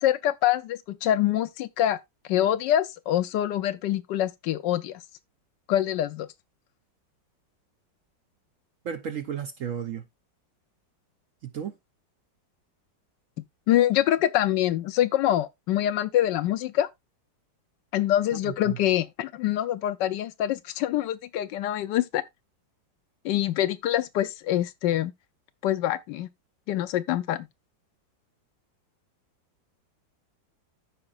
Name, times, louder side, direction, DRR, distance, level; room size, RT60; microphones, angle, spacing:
voice 1, 0.0-2.0 2.3-5.0 5.7-6.3 13.7-16.9 17.9-22.2 23.2-25.1 25.6-26.3 26.7-27.5, left 12 dB, 75° left, 1.3 m, -25 dB
voice 2, 8.8-10.0 11.4-11.7 18.3-18.8, right 8 dB, 65° right, 0.9 m, -34 dB
13.5 x 5.0 x 2.4 m
omnidirectional pair, 2.0 m